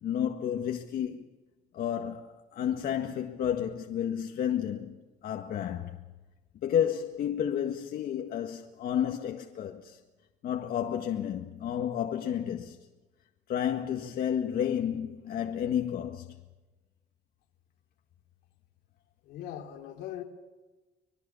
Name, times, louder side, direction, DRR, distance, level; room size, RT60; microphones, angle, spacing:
voice 1, 0.0-1.2 1.7-6.0 6.6-10.0 10.4-12.8 13.5-16.4, left 9 dB, 65° left, 1.8 m, -31 dB
voice 2, 19.2-20.2, left 11 dB, 85° left, 3.4 m, -40 dB
25.0 x 21.0 x 7.1 m
cardioid pair, 110°, 17 cm